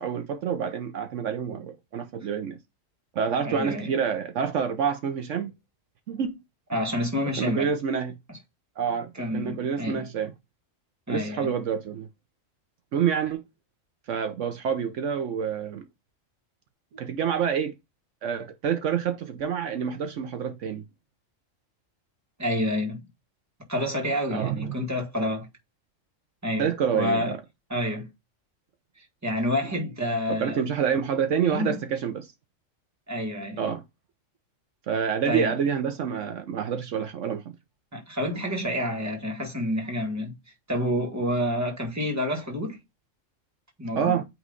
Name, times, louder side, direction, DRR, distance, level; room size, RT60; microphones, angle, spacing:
voice 1, 0.0-2.6 3.1-5.5 6.1-6.4 6.7-6.9 7.4-8.2 8.8-10.3 11.1-12.1 12.9-13.4 14.1-15.8 17.0-17.7 18.2-20.8 24.3-24.8 26.6-27.4 29.6-29.7 30.3-32.3 33.6-33.8 34.9-37.4 43.9-44.3, right 7 dB, 70° right, 1.1 m, -27 dB
voice 2, 3.4-3.9 6.7-7.7 8.3-8.4 9.2-10.0 11.1-11.5 22.4-23.0 23.7-25.5 26.4-27.4 27.7-28.1 29.0-30.6 31.4-31.8 33.1-33.7 35.3-35.6 37.9-40.3 40.7-42.8 43.8-44.2, left 1 dB, 15° right, 1.7 m, -28 dB
9.0 x 3.1 x 3.8 m
omnidirectional pair, 1.3 m